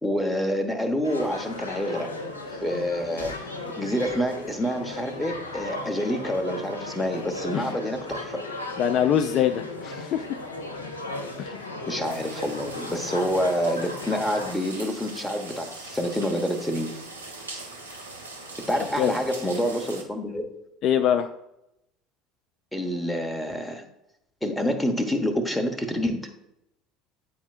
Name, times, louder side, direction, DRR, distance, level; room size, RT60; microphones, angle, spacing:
voice 1, 0.0-2.1 2.6-8.4 11.9-16.9 18.6-20.5 22.7-23.8 24.4-26.3, equal, 5° left, 5 dB, 1.0 m, -27 dB
sound 1, 1.0-14.5, left 2 dB, 90° left, 0.7 m, -36 dB
voice 2, 8.8-10.2 11.4-11.6 19.0-19.1 20.8-21.3, left 9 dB, 50° left, 6 dB, 0.4 m, -23 dB
sound 2, 12.0-20.0, right 2 dB, 90° right, 0.8 m, -41 dB
9.3 x 4.4 x 2.5 m, 0.83 s
figure-of-eight pair, 65°, 0 cm